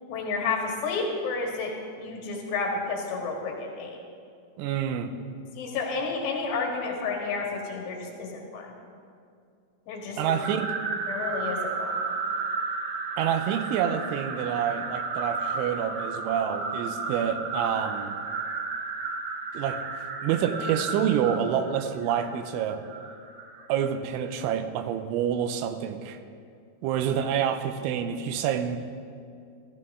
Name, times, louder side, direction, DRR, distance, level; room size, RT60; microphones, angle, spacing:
voice 1, 0.1-1.7 2.0-4.0 5.6-8.7 9.9-10.2 11.1-12.0, left 4 dB, 70° left, 0 dB, 3.8 m, -31 dB
voice 2, 4.6-5.1 10.2-10.7 13.2-18.2 19.5-19.8 20.2-22.8 23.7-26.2 26.8-28.8, right 9 dB, 85° right, 9 dB, 3.1 m, -27 dB
sound 1, 10.3-23.7, right 4 dB, 70° right, 2.4 m, -33 dB
14.5 x 14.0 x 3.7 m, 2.3 s
omnidirectional pair, 5.4 m